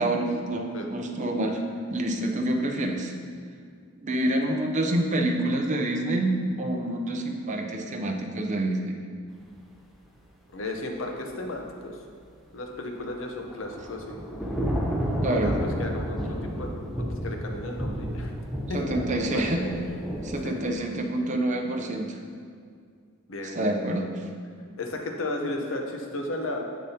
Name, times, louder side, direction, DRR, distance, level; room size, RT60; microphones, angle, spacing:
voice 1, 0.0-1.6 1.9-3.1 4.0-9.0 15.2-15.6 18.7-19.7 20.2-22.2 23.5-24.2, right 1 dB, 35° right, 2 dB, 0.6 m, -27 dB
voice 2, 10.5-12.0 12.5-14.2 15.3-15.5 15.8-18.3 18.7-19.5 20.4-20.7 23.3-24.0 24.8-26.6, left 2 dB, 70° left, 2 dB, 0.8 m, -34 dB
Thunder / Rain, 13.1-20.4, equal, ahead, 0.7 m, -31 dB
7.5 x 6.8 x 2.8 m, 2.2 s
head